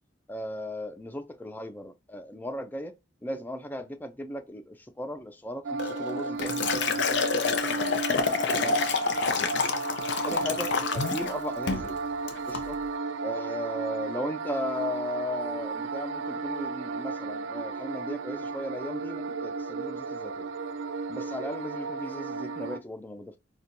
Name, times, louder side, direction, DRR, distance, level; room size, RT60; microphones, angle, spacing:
voice 1, 0.3-2.9 3.2-8.0 8.5-8.8 10.2-11.9 12.5-12.8 13.2-20.5 21.1-23.4, left 1 dB, 10° left, 0.3 m, -36 dB
sound 1, 5.6-22.8, right 4 dB, 85° right, 0.3 m, -34 dB
Liquid, 5.8-11.3 11.7-11.9 12.3-12.7, left 5 dB, 65° left, 0.5 m, -28 dB
4.2 x 2.2 x 2.5 m
head